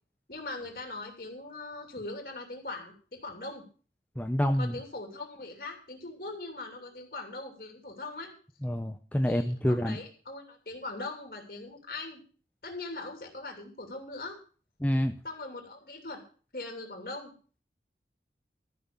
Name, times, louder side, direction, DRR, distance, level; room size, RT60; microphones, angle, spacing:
voice 1, 0.3-3.6 4.6-8.3 9.2-12.2 12.6-14.4 15.2-16.2 16.5-17.3, left 2 dB, 55° left, 3 dB, 2.8 m, -41 dB
voice 2, 4.2-4.7 8.6-10.0 14.8-15.1, equal, 10° left, 5 dB, 0.6 m, -27 dB
14.0 x 6.0 x 6.9 m, 0.41 s
head